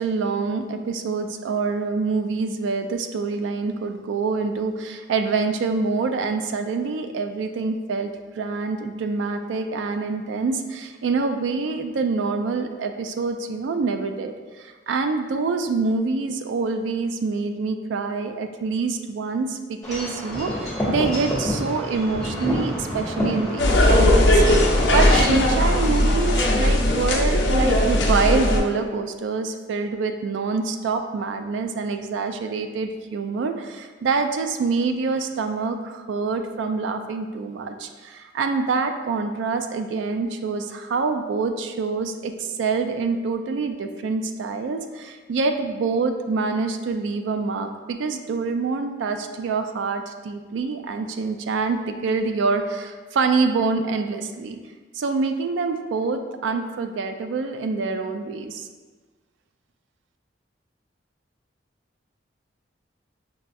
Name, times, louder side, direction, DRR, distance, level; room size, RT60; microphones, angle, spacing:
voice 1, 0.0-54.6 55.0-58.7, right 4 dB, 80° right, 7 dB, 0.3 m, -26 dB
Wind chime / Wind, 19.8-26.1, equal, ahead, 1.0 m, -29 dB
sound 1, 23.6-28.6, left 1 dB, 75° left, 0.5 m, -18 dB
5.3 x 2.3 x 2.5 m, 1.4 s
head